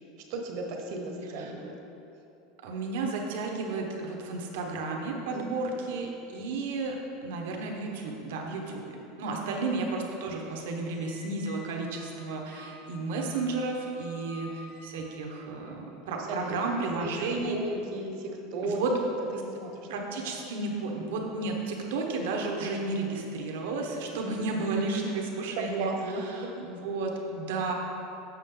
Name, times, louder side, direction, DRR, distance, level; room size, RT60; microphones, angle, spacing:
voice 1, 0.2-1.7 5.3-5.5 5.8-5.9 9.3-9.4 16.2-20.4 24.1-24.2 25.0-25.3 25.6-26.6, right 2 dB, 50° right, 2 dB, 1.0 m, -36 dB
voice 2, 2.6-7.0 7.2-8.9 9.2-17.6 18.6-18.9 19.9-25.9 26.4-27.7, right 3 dB, 75° right, 1 dB, 1.1 m, -32 dB
Squeak, 10.9-15.4, left 2 dB, 85° left, 1.7 m, -51 dB
7.4 x 6.8 x 3.8 m, 2.9 s
supercardioid pair, 160°, 0 cm